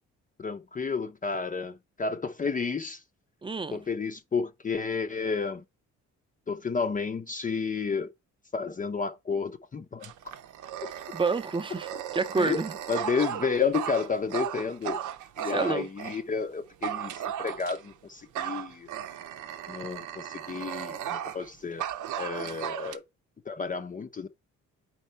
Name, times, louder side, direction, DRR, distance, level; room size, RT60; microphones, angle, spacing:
voice 1, 0.4-3.0 3.7-5.6 6.5-8.1 8.5-10.1 12.4-12.6 12.9-15.0 15.4-18.9 19.7-21.8 22.2-23.0 23.5-24.3, left 5 dB, 25° left, 0.6 m, -31 dB
voice 2, 3.4-3.8 11.1-11.9 12.1-12.7 15.4-15.9, right 4 dB, 15° right, 0.6 m, -28 dB
Dog, 10.0-16.2 16.8-17.9 18.3-21.5 21.8-23.0, right 10 dB, 80° right, 0.8 m, -36 dB
4.4 x 4.2 x 5.4 m
cardioid pair, 90°, 30 cm